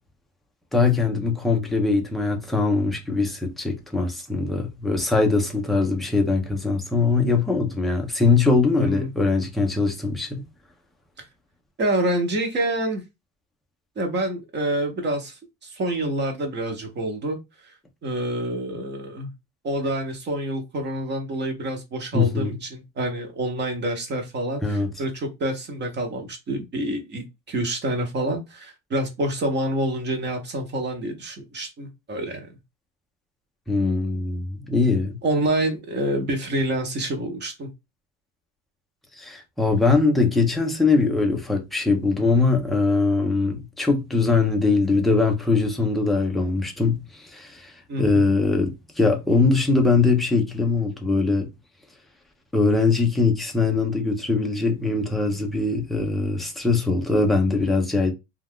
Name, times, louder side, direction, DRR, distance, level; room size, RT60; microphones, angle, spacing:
voice 1, 0.7-10.4 22.1-22.6 24.6-24.9 33.7-35.2 39.2-47.7 48.0-51.5 52.5-58.1, left 3 dB, ahead, 0.4 m, -22 dB
voice 2, 8.8-9.1 11.8-13.0 14.0-17.4 18.0-19.3 19.6-32.4 35.2-37.7 47.9-48.2, right 1 dB, 30° right, 0.8 m, -27 dB
2.4 x 2.3 x 3.5 m
cardioid pair, 135°, 38 cm